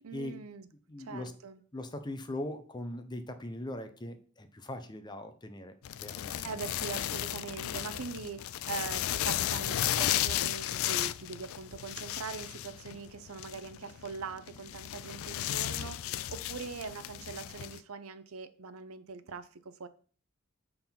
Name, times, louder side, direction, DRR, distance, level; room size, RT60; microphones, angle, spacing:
voice 1, 0.0-0.7 1.0-1.6 6.2-19.9, right 5 dB, 80° right, 0.6 m, -42 dB
voice 2, 0.9-1.3 1.7-5.7 6.0-6.6, left 1 dB, 20° left, 0.7 m, -40 dB
sound 1, 5.8-17.8, left 12 dB, 75° left, 0.3 m, -34 dB
6.8 x 3.8 x 5.7 m
head